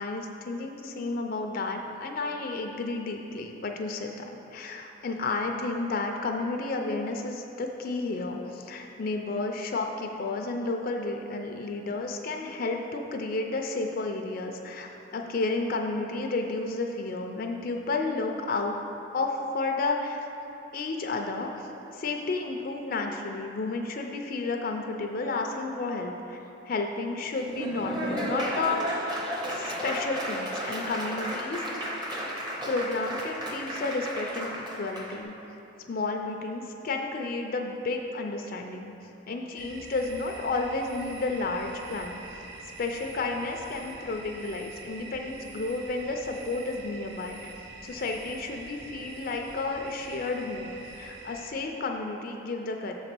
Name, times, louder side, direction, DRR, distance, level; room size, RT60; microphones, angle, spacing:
voice 1, 0.0-4.2 4.5-18.8 19.1-20.2 20.7-29.0 29.5-31.6 32.7-35.3 35.9-38.9 39.3-42.2 42.8-47.5 47.8-52.9, left 3 dB, 50° left, 3 dB, 0.4 m, -32 dB
Laughter / Applause, 27.3-35.2, equal, 25° right, 0.8 m, -33 dB
sound 1, 39.6-51.5, right 3 dB, 65° right, 0.7 m, -45 dB
7.2 x 4.0 x 6.0 m, 3.0 s
head